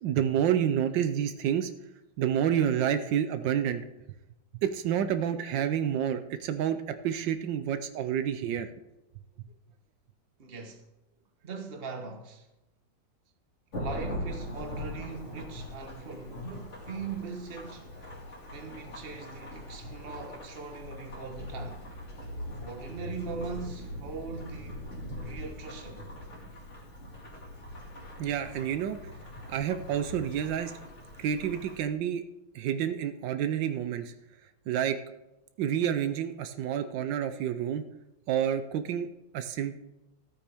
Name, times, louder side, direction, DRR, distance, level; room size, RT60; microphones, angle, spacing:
voice 1, 0.0-1.7 2.2-3.8 4.6-6.8 7.0-8.7 28.2-29.0 29.5-30.7 31.2-32.2 32.5-34.1 34.7-35.0 35.6-37.8 38.3-39.1 39.3-39.8, right 9 dB, 80° right, 1.4 m, -29 dB
voice 2, 10.4-10.9 11.4-12.5 13.7-17.9 18.5-21.9 22.6-24.9 25.1-26.0, right 4 dB, 35° right, 1.3 m, -40 dB
Thunderstorm / Rain, 13.7-31.8, left 1 dB, 40° left, 2.4 m, -41 dB
14.0 x 8.7 x 3.5 m
omnidirectional pair, 2.0 m